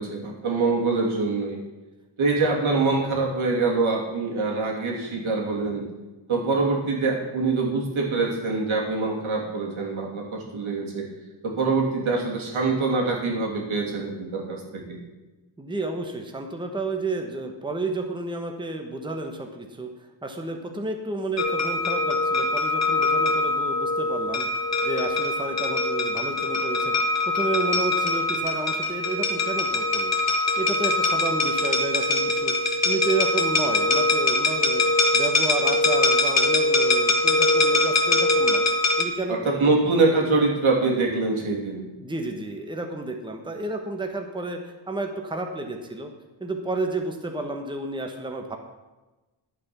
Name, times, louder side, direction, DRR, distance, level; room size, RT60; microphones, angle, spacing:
voice 1, 0.0-1.6 2.2-5.8 6.3-11.1 11.4-15.0 39.3-41.8, right 3 dB, 85° right, -1 dB, 2.9 m, -24 dB
voice 2, 15.6-19.9 20.2-30.2 30.6-32.5 32.8-34.8 35.1-38.6 39.0-39.8 42.0-46.1 46.4-48.6, right 2 dB, 10° right, 3 dB, 1.0 m, -31 dB
sound 1, 21.4-39.0, left 2 dB, 35° left, 1.1 m, -23 dB
11.0 x 8.4 x 6.0 m, 1.1 s
wide cardioid pair, 160°, 47 cm